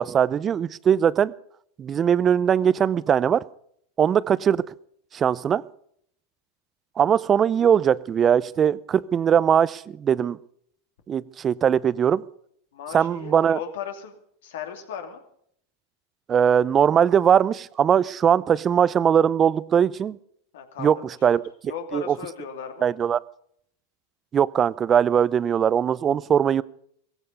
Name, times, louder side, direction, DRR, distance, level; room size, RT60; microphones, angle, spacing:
voice 1, 0.0-1.3 1.8-3.4 4.0-4.6 5.1-5.6 7.0-10.4 11.1-12.2 12.9-13.6 16.3-20.2 20.8-21.0 21.2-21.4 21.9-22.2 22.8-23.2 24.3-26.6, right 8 dB, 30° right, 20 dB, 0.5 m, -20 dB
voice 2, 12.7-14.1 14.4-15.2 20.5-22.9, left 7 dB, 70° left, 5 dB, 2.8 m, -37 dB
16.5 x 15.0 x 5.3 m, 0.67 s
hypercardioid pair, 105°, 0 cm